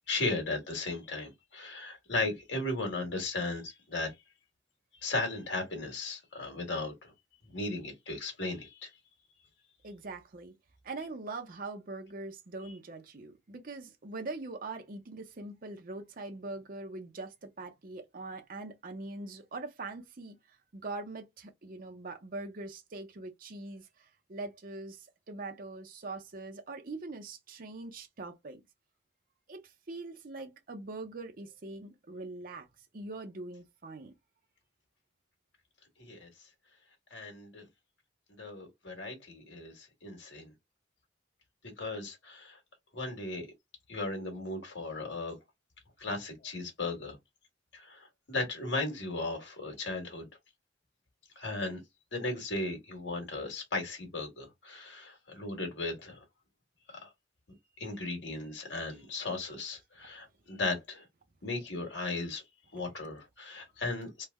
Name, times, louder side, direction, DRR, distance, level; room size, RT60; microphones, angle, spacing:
voice 1, 0.1-4.1 5.0-7.1 7.5-8.9 36.0-36.3 37.1-37.7 38.4-40.5 41.8-42.6 42.9-43.5 43.9-45.3 46.0-47.2 47.7-50.3 51.3-51.8 52.1-56.2 56.9-57.1 57.8-61.0 61.4-62.4 62.7-64.2, left 2 dB, 65° left, 1.6 m, -36 dB
voice 2, 9.8-10.5 10.8-20.4 20.7-23.9 24.3-28.6 29.5-32.7 32.9-34.1, right 3 dB, 50° right, 0.6 m, -42 dB
3.2 x 2.1 x 3.4 m
head